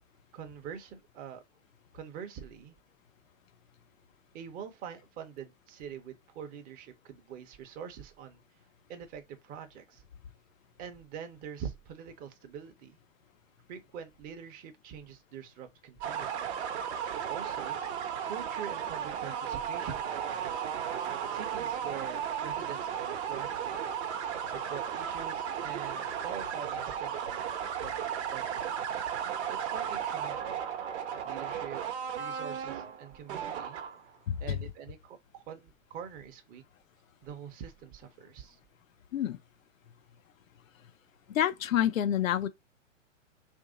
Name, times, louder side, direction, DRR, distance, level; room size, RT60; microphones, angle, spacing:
voice 1, 0.3-1.4 1.9-2.7 4.3-8.4 8.9-10.0 10.8-13.0 13.7-16.5 17.1-17.8 18.2-20.6 21.3-23.8 24.5-28.6 29.5-30.7 31.2-31.8 32.1-33.8 34.4-36.6 37.2-38.6, right 8 dB, 20° right, 0.6 m, -44 dB
sound 1, 16.0-34.2, right 8 dB, 60° right, 0.8 m, -35 dB
voice 2, 34.3-34.6 39.1-39.4 41.3-42.5, left 11 dB, 90° left, 0.5 m, -28 dB
2.9 x 2.6 x 3.7 m
hypercardioid pair, 125°, 39 cm